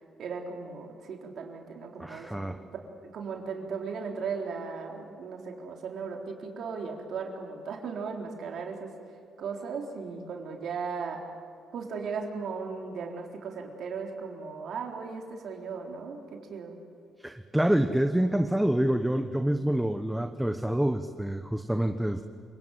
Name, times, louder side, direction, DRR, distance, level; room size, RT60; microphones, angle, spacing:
voice 1, 0.2-2.7 3.0-8.9 9.4-11.2 11.7-16.7, right 5 dB, 70° right, 2 dB, 3.9 m, -37 dB
voice 2, 2.0-2.6 17.2-22.2, right 1 dB, 5° right, 7 dB, 1.1 m, -27 dB
29.0 x 18.5 x 8.2 m, 2.7 s
cardioid pair, 90°, 0 cm